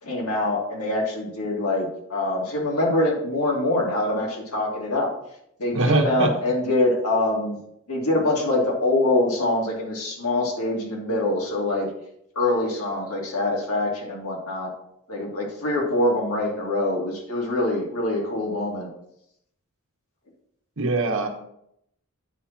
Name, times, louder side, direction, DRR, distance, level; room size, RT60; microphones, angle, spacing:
voice 1, 0.0-5.1 5.6-7.6 7.9-11.9 12.3-14.7 15.1-18.9, left 2 dB, 90° left, -2 dB, 2.7 m, -24 dB
voice 2, 5.7-6.3 20.8-21.3, right 3 dB, 65° right, 4 dB, 1.2 m, -22 dB
9.1 x 4.3 x 6.0 m, 0.75 s
head